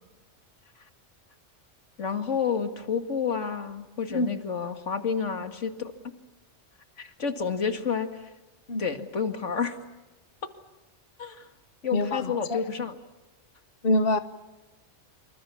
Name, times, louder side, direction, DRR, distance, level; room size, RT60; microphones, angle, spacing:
voice 1, 2.0-5.9 7.0-8.3 8.8-9.8 11.2-11.5 11.8-13.0, left 6 dB, 85° left, 7 dB, 2.3 m, -30 dB
voice 2, 11.9-12.6 13.8-14.2, left 2 dB, 50° left, 11 dB, 1.3 m, -25 dB
27.5 x 25.5 x 7.3 m, 1.1 s
omnidirectional pair, 1.2 m